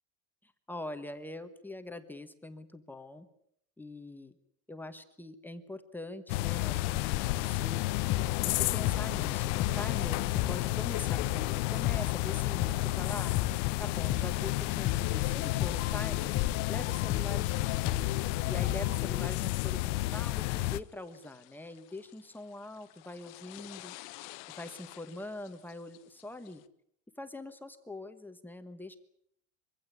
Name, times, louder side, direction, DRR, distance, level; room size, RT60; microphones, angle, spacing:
voice 1, 0.4-3.3 3.8-4.3 4.7-7.8 8.4-13.4 13.8-16.3 16.7-17.8 18.4-23.9 24.6-26.6 27.2-29.0, left 2 dB, 5° left, 8 dB, 1.2 m, -43 dB
sound 1, 6.3-20.8, left 19 dB, 75° left, 0.9 m, -31 dB
sound 2, 7.9-19.3, left 12 dB, 40° left, 1.1 m, -37 dB
sound 3, 15.6-26.6, left 20 dB, 60° left, 1.2 m, -52 dB
24.0 x 16.5 x 9.8 m, 0.73 s
cardioid pair, 165°, 36 cm